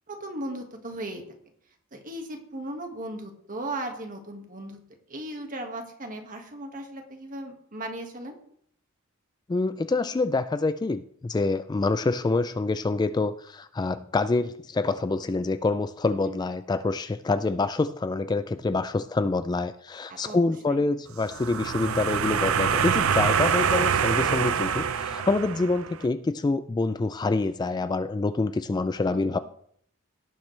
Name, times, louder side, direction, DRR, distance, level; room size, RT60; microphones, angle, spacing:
voice 1, 0.1-1.2 1.9-4.8 5.1-8.4 16.3-16.4 20.1-20.4 20.7-20.8 29.3-29.4, right 1 dB, 40° right, 4 dB, 1.7 m, -37 dB
voice 2, 9.5-29.4, left 3 dB, 20° left, 12 dB, 0.3 m, -26 dB
sound 1, 21.2-25.9, right 7 dB, 80° right, 0.6 m, -25 dB
17.5 x 7.5 x 3.3 m, 0.64 s
head